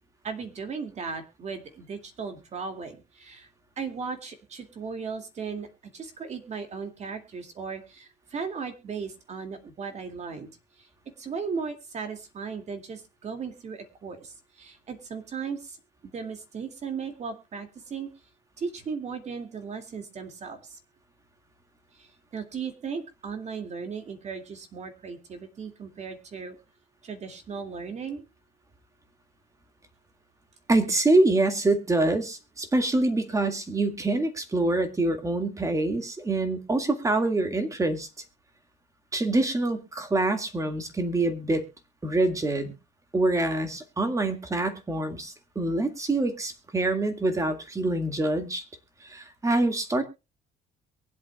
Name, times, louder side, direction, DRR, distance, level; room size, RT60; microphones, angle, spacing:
voice 1, 0.2-3.5 3.8-10.5 11.2-15.8 16.1-18.1 18.6-20.8 22.0-26.6 27.0-28.2, right 5 dB, 40° right, 7 dB, 2.3 m, -36 dB
voice 2, 30.7-38.1 39.1-41.7 42.0-42.7 43.1-48.6 49.0-50.0, right 2 dB, 20° right, 8 dB, 2.0 m, -25 dB
23.0 x 8.3 x 2.3 m, 0.28 s
cardioid pair, 110°, 17 cm